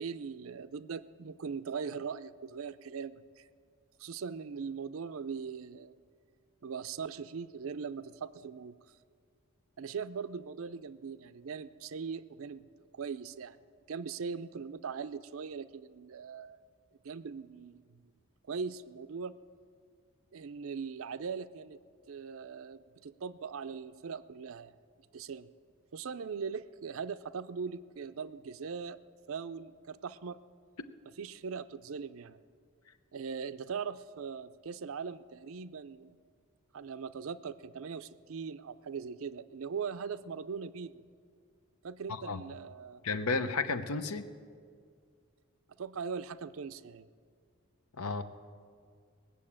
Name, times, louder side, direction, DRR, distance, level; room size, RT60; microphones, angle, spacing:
voice 1, 0.0-3.4 4.0-6.0 6.6-8.8 9.8-12.6 12.9-13.6 13.9-16.6 17.0-18.1 18.5-19.4 20.3-21.8 22.1-24.7 25.1-25.5 25.9-29.0 29.3-30.4 31.2-32.4 33.1-36.1 36.7-41.0 41.8-43.0 45.8-47.1, right 6 dB, 70° right, 14 dB, 0.4 m, -40 dB
voice 2, 42.1-42.4 43.0-44.2 48.0-48.2, left 4 dB, 80° left, 10 dB, 0.8 m, -32 dB
19.0 x 7.0 x 8.7 m, 2.1 s
head